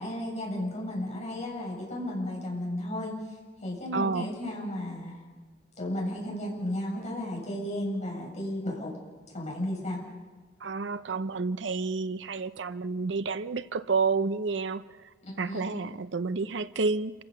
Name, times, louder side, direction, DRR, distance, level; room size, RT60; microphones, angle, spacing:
voice 1, 0.0-3.1 3.6-5.2 5.8-8.9 9.3-10.0 15.2-15.7, left 1 dB, 40° left, 7.7 m, -34 dB
voice 2, 3.9-4.3 10.6-14.8 15.4-17.1, right 4 dB, 75° right, 0.6 m, -29 dB
28.5 x 15.5 x 6.8 m
head